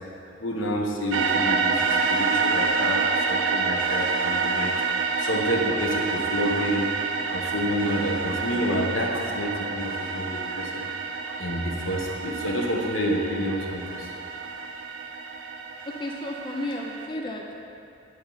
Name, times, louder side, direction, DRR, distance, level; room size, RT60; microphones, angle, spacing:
voice 1, 0.4-4.8 5.2-6.9 7.3-10.9 11.4-14.1, equal, 80° left, 0 dB, 1.2 m, -28 dB
sound 1, 1.1-17.1, right 4 dB, 85° right, 0.6 m, -28 dB
voice 2, 15.9-17.6, left 1 dB, 25° left, 1 dB, 0.5 m, -33 dB
8.9 x 7.9 x 4.0 m, 2.7 s
head